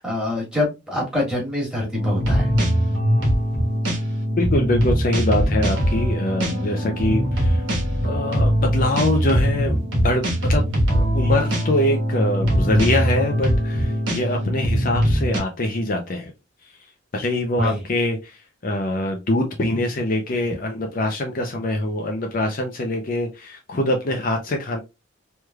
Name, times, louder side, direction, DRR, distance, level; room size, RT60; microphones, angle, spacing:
voice 1, 0.0-2.5 17.6-17.8, left 1 dB, 5° right, 1.5 m, -25 dB
sound 1, 1.9-15.4, equal, 70° right, 1.3 m, -21 dB
voice 2, 4.4-7.7 8.0-10.7 10.9-16.3 17.1-24.8, left 1 dB, 45° left, 0.5 m, -24 dB
3.3 x 3.2 x 2.2 m
head